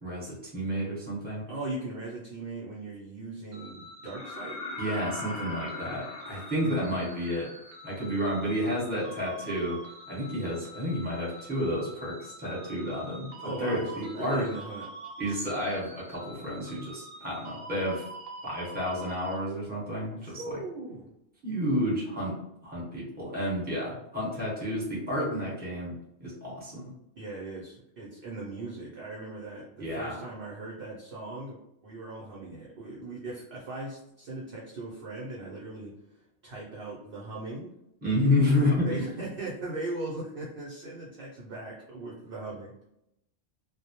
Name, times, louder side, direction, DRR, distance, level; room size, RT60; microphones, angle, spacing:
voice 1, 0.0-1.5 4.8-7.5 7.8-9.8 10.1-14.5 15.2-18.0 18.4-20.6 21.4-22.4 22.6-25.9 26.2-26.9 29.8-30.2 38.0-39.0, left 1 dB, 10° right, -6 dB, 0.8 m, -30 dB
voice 2, 1.5-4.6 6.6-7.0 13.4-14.9 20.2-21.1 27.2-37.8 38.8-42.7, right 2 dB, 60° right, -4 dB, 0.6 m, -39 dB
sound 1, 3.5-19.4, right 2 dB, 80° right, 0.9 m, -45 dB
sound 2, 4.1-7.9 9.8-9.9, left 3 dB, 70° left, 0.9 m, -40 dB
2.1 x 2.0 x 2.8 m, 0.82 s
omnidirectional pair, 1.3 m